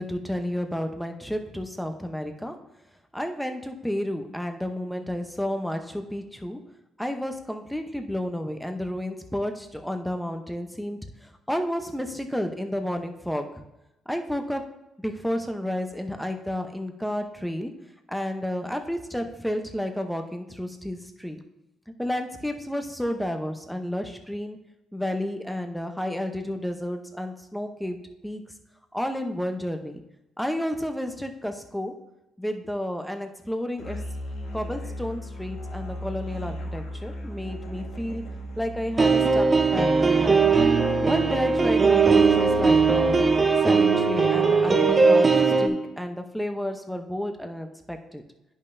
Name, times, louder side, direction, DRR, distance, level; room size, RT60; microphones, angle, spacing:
voice 1, 0.0-2.6 3.1-6.6 7.0-13.6 14.1-14.6 15.0-17.7 18.1-21.4 22.0-24.6 24.9-28.0 28.2-28.4 28.9-30.0 30.4-31.9 32.4-34.0 34.5-38.2 38.6-40.5 41.0-43.2 43.6-45.3 45.6-48.2, equal, ahead, 6 dB, 0.8 m, -31 dB
Musical instrument, 33.8-43.6, equal, 85° left, 1.5 m, -36 dB
sound 1, 39.0-45.7, right 4 dB, 30° right, 0.7 m, -19 dB
10.5 x 5.5 x 2.7 m, 0.92 s
cardioid pair, 90°, 0 cm